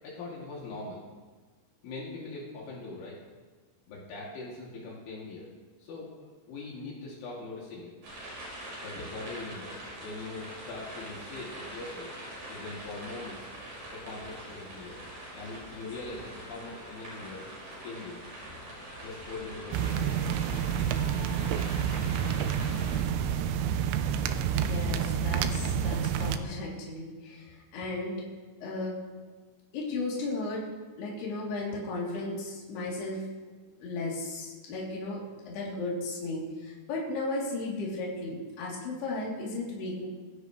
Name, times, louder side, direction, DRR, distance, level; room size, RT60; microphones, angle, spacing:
voice 1, 0.0-1.0 1.8-3.2 3.9-5.5 5.8-6.1 6.5-7.9 8.8-12.1 12.5-13.5 13.9-15.0 15.3-17.5 17.8-18.2 19.0-20.3, left 3 dB, 70° left, -5 dB, 5.1 m, -41 dB
sound 1, 8.0-23.0, right 1 dB, 50° right, 7.5 m, -43 dB
sound 2, 19.7-26.4, right 8 dB, 80° right, 3.0 m, -29 dB
voice 2, 24.5-28.3 28.6-29.0 29.7-30.6 31.0-33.3 33.8-40.1, left 2 dB, 55° left, -4 dB, 5.1 m, -35 dB
26.0 x 16.0 x 3.3 m, 1.4 s
omnidirectional pair, 5.8 m